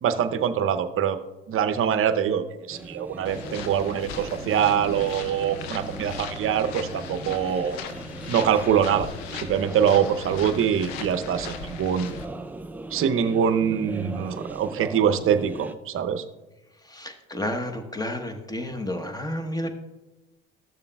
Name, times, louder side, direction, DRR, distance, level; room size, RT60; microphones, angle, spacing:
voice 1, 0.0-1.2 1.5-7.8 8.3-12.2 12.9-16.2, right 8 dB, 40° right, 10 dB, 0.7 m, -24 dB
sound 1, 2.7-15.7, right 2 dB, 5° right, 0.4 m, -39 dB
sound 2, 3.2-12.3, left 6 dB, 80° left, 0.8 m, -38 dB
voice 2, 16.9-19.7, left 1 dB, 10° left, 6 dB, 1.0 m, -31 dB
13.5 x 6.9 x 2.3 m, 1.1 s
hypercardioid pair, 75°, 32 cm